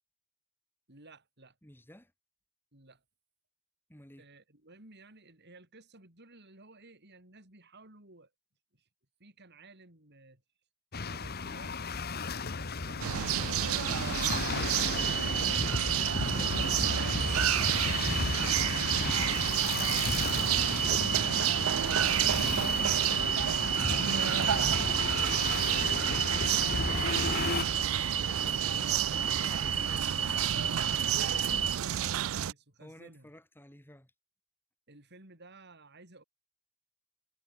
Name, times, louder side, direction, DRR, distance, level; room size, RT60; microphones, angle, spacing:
voice 1, 0.9-1.6 2.7-3.0 4.2-8.3 8.7-8.9 9.2-10.4 11.0-11.8 12.8-13.5 17.4-19.0 31.2-33.3 34.9-36.2, right 2 dB, 50° right, 6.3 m, -55 dB
voice 2, 1.6-2.1 3.9-4.3 26.3-30.1 32.8-34.1, equal, 10° left, 5.6 m, -52 dB
sound 1, 10.9-27.7, left 4 dB, 45° left, 1.2 m, -34 dB
sound 2, 13.0-32.5, right 10 dB, 70° right, 0.4 m, -31 dB
sound 3, 15.0-31.8, right 7 dB, 25° right, 0.6 m, -33 dB
head